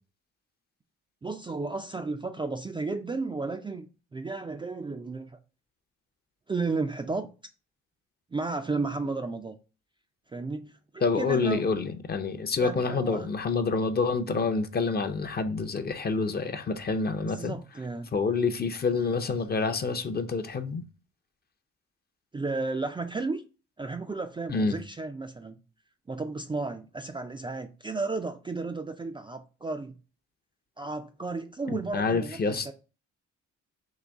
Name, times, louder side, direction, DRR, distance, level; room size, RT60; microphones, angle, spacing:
voice 1, 1.2-5.4 6.5-7.3 8.3-9.5 10.3-10.7 11.2-11.6 12.6-13.3 17.2-18.1 22.3-23.4 23.8-25.6 26.1-29.9 30.8-32.7, right 3 dB, 15° right, 0.3 m, -33 dB
voice 2, 11.0-17.5 18.1-20.8 24.5-24.8 31.7-32.7, left 4 dB, 30° left, 0.6 m, -27 dB
4.0 x 2.8 x 3.4 m
cardioid pair, 90°, 30 cm